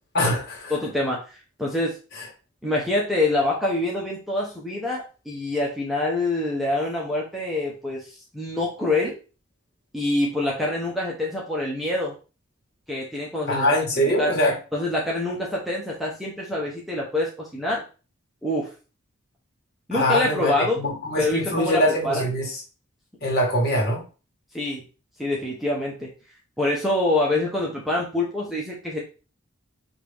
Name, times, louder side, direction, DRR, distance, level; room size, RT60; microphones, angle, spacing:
voice 1, 0.1-0.7 2.2-2.3 13.5-14.6 19.9-22.6 23.2-24.0, equal, 50° left, -2 dB, 1.7 m, -23 dB
voice 2, 0.7-1.2 1.6-2.0 2.6-8.1 8.3-9.1 9.9-12.1 12.9-13.7 14.0-14.3 14.7-17.8 18.4-18.7 19.9-20.8 21.2-22.3 24.5-24.8 25.2-26.1 26.6-29.0, left 2 dB, ahead, -4 dB, 0.8 m, -25 dB
5.1 x 2.6 x 3.4 m, 0.34 s
head